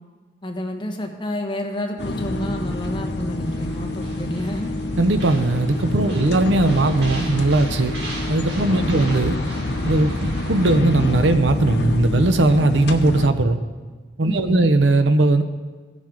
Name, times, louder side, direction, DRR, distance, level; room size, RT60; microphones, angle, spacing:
voice 1, 0.4-4.7 6.0-6.3 8.6-9.0 14.3-14.7, left 1 dB, 25° left, 3 dB, 1.0 m, -30 dB
sound 1, 2.0-13.3, left 2 dB, 65° left, 0.8 m, -27 dB
noisy truck passing, 3.4-10.8, right 1 dB, 60° right, 2.6 m, -38 dB
voice 2, 5.0-7.9 8.3-9.4 9.8-10.2 10.5-13.6 14.2-15.4, right 2 dB, 75° right, 9 dB, 0.7 m, -18 dB
16.5 x 7.3 x 3.8 m, 1.4 s
head